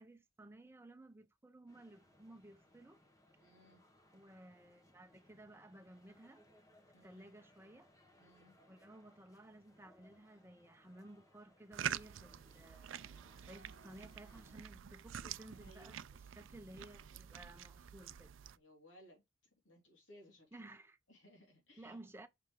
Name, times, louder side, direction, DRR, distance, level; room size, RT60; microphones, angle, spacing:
voice 1, 0.0-3.0 4.1-6.5 6.8-7.9 8.7-13.1 13.5-16.0 16.3-18.4 20.5-21.0 21.8-22.3, right 1 dB, 15° right, 0.7 m, -56 dB
sound 1, 1.7-14.7, left 1 dB, 20° left, 1.3 m, -68 dB
voice 2, 3.4-3.8 6.9-7.3 8.2-8.6 15.5-16.0 18.5-19.2 19.6-20.6 21.1-22.0, equal, 75° left, 3.3 m, -62 dB
sound 2, 11.7-18.6, right 9 dB, 85° right, 0.4 m, -47 dB
sound 3, 13.5-15.6, right 5 dB, 70° right, 0.8 m, -68 dB
5.8 x 5.3 x 3.8 m
head